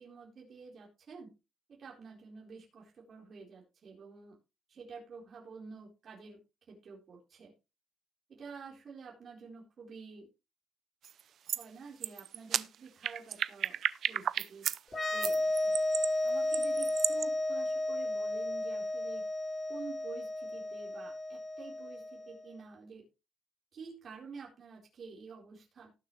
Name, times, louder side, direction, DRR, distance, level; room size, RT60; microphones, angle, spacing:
voice 1, 0.0-1.3 1.7-4.4 4.7-6.4 6.7-7.5 8.3-10.3 11.5-13.8 14.1-14.7 15.1-15.8 16.2-19.3 19.7-23.0 23.7-25.9, right 4 dB, 45° right, -2 dB, 4.2 m, -49 dB
sound 1, 11.0-11.2 11.5-11.6 12.0-14.8 15.2-17.2, right 9 dB, 60° right, 0.5 m, -33 dB
sound 2, 14.9-22.4, left 1 dB, 25° left, 3.3 m, -33 dB
18.5 x 6.8 x 3.2 m, 0.28 s
cardioid pair, 145°, 0 cm